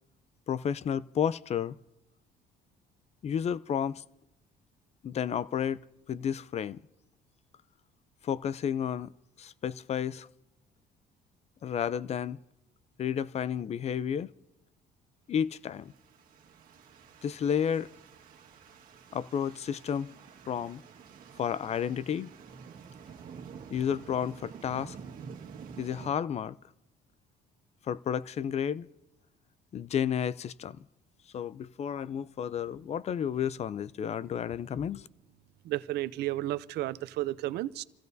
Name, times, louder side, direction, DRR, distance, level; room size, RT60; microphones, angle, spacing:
voice 1, 0.5-1.8 3.2-4.0 5.0-5.8 6.1-6.8 8.2-9.1 9.4-10.3 11.6-12.4 13.0-14.3 15.3-15.9 17.2-17.9 19.1-20.1 20.5-20.8 21.4-22.3 23.7-25.0 25.8-26.6 27.9-28.9 29.7-30.8 31.3-35.1, left 8 dB, 40° left, 0.4 m, -31 dB
sound 1, 15.8-26.1, right 6 dB, 55° right, 1.7 m, -49 dB
voice 2, 35.6-37.8, right 16 dB, 80° right, 0.6 m, -32 dB
28.5 x 16.0 x 2.7 m
cardioid pair, 110°, 17 cm